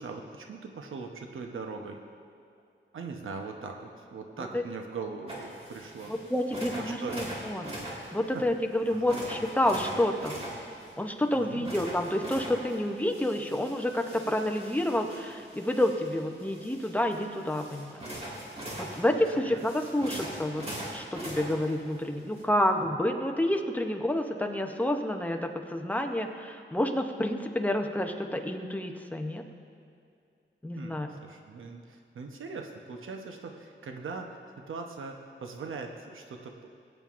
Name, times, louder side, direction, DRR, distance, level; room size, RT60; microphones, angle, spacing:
voice 1, 0.0-2.0 2.9-6.1 7.0-7.2 8.3-8.4 8.9-9.2 11.3-11.7 19.1-19.6 30.8-36.6, right 4 dB, 85° right, 3 dB, 0.9 m, -41 dB
sound 1, 5.3-22.4, right 1 dB, 30° right, 1.9 m, -42 dB
voice 2, 6.1-7.7 8.1-10.4 11.0-18.1 18.8-29.4 30.6-31.1, left 1 dB, 10° left, 4 dB, 0.6 m, -29 dB
20.5 x 9.1 x 2.5 m, 2.4 s
wide cardioid pair, 170°, 20 cm